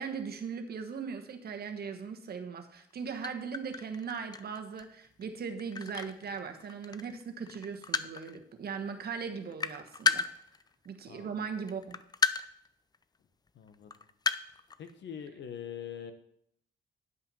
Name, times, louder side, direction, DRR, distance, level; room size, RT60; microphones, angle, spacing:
voice 1, 0.0-10.3 10.8-12.0, right 6 dB, 50° right, 6 dB, 1.2 m, -39 dB
sound 1, 2.9-3.0 3.2-7.2 7.5-8.4 8.9-9.1 9.3-11.0 11.6-12.7 12.9-13.0 13.7-14.9, left 5 dB, 20° left, 0.4 m, -33 dB
voice 2, 11.1-11.5 13.5-13.9 14.8-16.1, left 8 dB, 65° left, 8 dB, 1.2 m, -43 dB
9.7 x 5.6 x 5.5 m, 0.71 s
cardioid pair, 90°, 20 cm